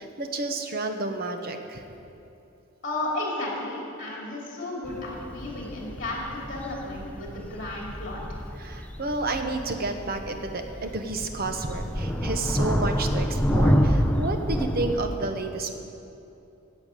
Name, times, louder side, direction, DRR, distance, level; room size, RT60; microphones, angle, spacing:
voice 1, 0.0-1.8 8.6-15.7, right 2 dB, 45° right, 5 dB, 0.9 m, -30 dB
voice 2, 2.8-8.4, left 2 dB, 35° left, -3 dB, 2.5 m, -33 dB
sound 1, 4.8-15.0, equal, 5° left, 0.5 m, -28 dB
11.0 x 7.3 x 8.9 m, 2.8 s
head